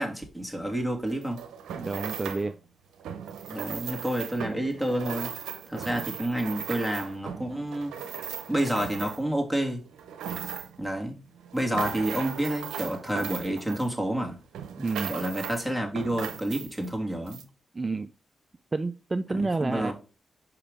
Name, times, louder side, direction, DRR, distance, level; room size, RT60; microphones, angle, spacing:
voice 1, 0.0-1.4 3.5-5.3 5.7-8.0 8.5-9.8 10.8-11.2 11.5-14.4 15.1-17.4 19.4-19.9, right 1 dB, ahead, 2.2 m, -29 dB
sound 1, 1.1-2.5 3.0-9.4 9.9-10.9 11.4-14.2 14.5-15.6 16.0-16.9 17.3-17.4, right 8 dB, 90° right, 0.7 m, -38 dB
voice 2, 1.7-2.6 14.8-15.1 17.7-18.1 18.7-19.9, right 3 dB, 35° right, 0.4 m, -29 dB
5.5 x 4.9 x 3.6 m
supercardioid pair, 50°, 0 cm